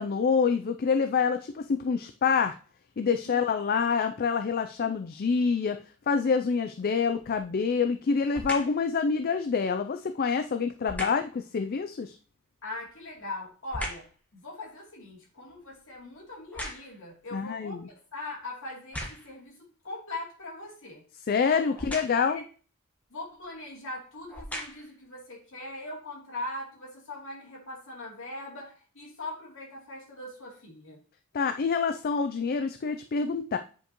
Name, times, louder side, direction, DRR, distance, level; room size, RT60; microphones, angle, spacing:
voice 1, 0.0-2.5 3.0-5.8 6.1-12.2 17.3-17.9 21.3-22.4 31.3-33.6, left 5 dB, 45° left, 8 dB, 0.4 m, -27 dB
sound 1, 7.1-7.5 8.3-8.8 10.8-11.3 12.7-14.2 14.6-17.1 17.8-17.9 18.7-19.4 21.7-22.3 23.4-23.5 24.2-25.0 25.6-25.7, equal, 5° left, 1.4 m, -39 dB
voice 2, 12.6-14.1 14.3-21.0 21.4-21.6 22.3-22.4 23.1-31.0, left 2 dB, 60° left, -2 dB, 3.0 m, -41 dB
9.0 x 5.3 x 3.0 m, 0.39 s
head